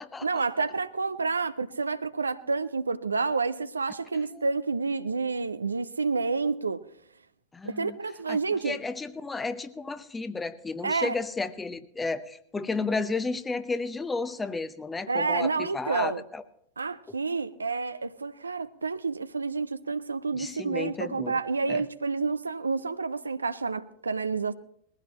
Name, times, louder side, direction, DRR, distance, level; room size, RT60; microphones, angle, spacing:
voice 1, 0.2-6.8 7.6-8.8 10.8-11.2 15.1-16.2 16.8-24.5, right 4 dB, 75° right, 0.6 m, -29 dB
voice 2, 4.1-4.4 7.5-8.0 8.3-8.4 8.6-16.4 17.1-17.2 20.3-21.4 21.7-21.8, left 3 dB, 10° left, 0.8 m, -33 dB
21.0 x 15.5 x 3.0 m
figure-of-eight pair, 90°, 0 cm